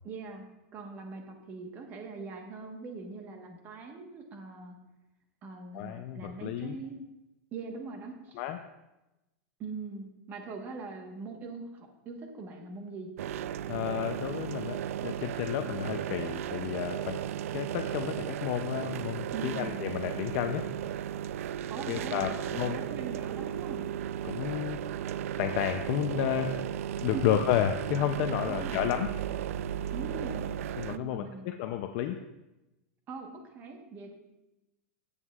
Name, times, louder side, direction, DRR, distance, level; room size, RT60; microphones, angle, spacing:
voice 1, 0.0-0.5 0.7-4.8 5.4-7.0 7.5-8.4 9.6-13.1 19.3-19.8 21.7-23.8 27.1-27.4 28.4-28.9 29.9-30.5 30.9-31.5 33.1-34.1, right 4 dB, 25° right, 3 dB, 1.1 m, -42 dB
voice 2, 5.7-6.8 8.4-8.6 13.7-17.2 17.5-20.7 21.9-22.8 24.2-24.8 25.4-26.5 27.0-29.1 30.8-32.2, left 10 dB, 40° left, 7 dB, 0.4 m, -31 dB
sound 1, 13.2-31.0, right 10 dB, 75° right, 0.3 m, -35 dB
14.5 x 8.1 x 2.3 m, 0.99 s
supercardioid pair, 170°, 8 cm